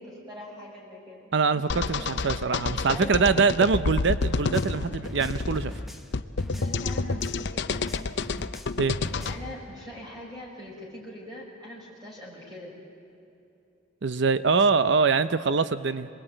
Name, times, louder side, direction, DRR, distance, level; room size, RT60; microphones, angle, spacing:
voice 1, 0.0-3.5 6.5-8.1 9.0-12.7, left 1 dB, 20° right, -5 dB, 5.3 m, -43 dB
voice 2, 1.3-5.7 8.8-9.0 14.0-16.1, right 4 dB, 60° right, 13 dB, 0.6 m, -24 dB
sound 1, 1.7-9.4, left 3 dB, 60° left, 0.7 m, -29 dB
sound 2, 4.2-7.5 7.7-9.5, equal, ahead, 1.0 m, -42 dB
26.5 x 21.0 x 9.0 m, 2.8 s
head